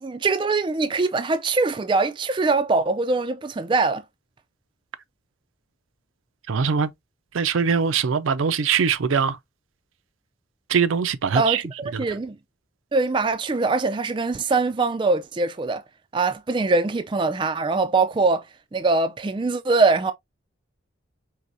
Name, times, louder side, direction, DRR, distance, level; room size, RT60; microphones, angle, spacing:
voice 1, 0.0-4.0 11.3-12.4 12.9-15.8 16.1-18.4 18.7-20.1, right 3 dB, 25° right, 0.3 m, -22 dB
voice 2, 6.5-6.9 7.3-9.4 10.7-11.6 11.9-12.0, right 6 dB, 85° right, 0.5 m, -22 dB
4.6 x 3.3 x 2.6 m
head